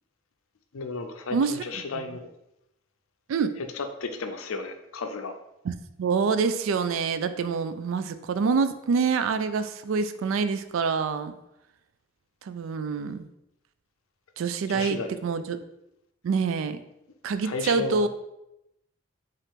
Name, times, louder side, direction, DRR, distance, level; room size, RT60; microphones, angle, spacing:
voice 1, 0.7-2.2 3.7-5.3 14.7-15.1 17.4-18.1, left 4 dB, 70° left, 7 dB, 0.5 m, -33 dB
voice 2, 1.3-1.6 3.3-3.6 5.6-11.3 12.5-13.2 14.4-15.6 16.2-16.8 17.2-18.1, right 5 dB, 65° right, 11 dB, 0.3 m, -26 dB
5.4 x 2.5 x 3.6 m, 0.85 s
head